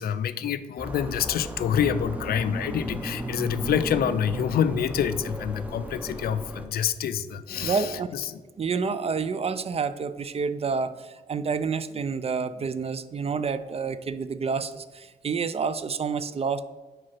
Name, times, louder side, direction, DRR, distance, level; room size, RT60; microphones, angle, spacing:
voice 1, 0.0-8.4, left 8 dB, 65° left, 13 dB, 0.4 m, -27 dB
sound 1, 0.8-6.7, right 1 dB, 10° right, 0.8 m, -35 dB
voice 2, 7.5-8.1 8.6-16.6, right 5 dB, 35° right, 13 dB, 0.4 m, -29 dB
4.9 x 4.7 x 4.4 m, 1.3 s
supercardioid pair, 60°, 17 cm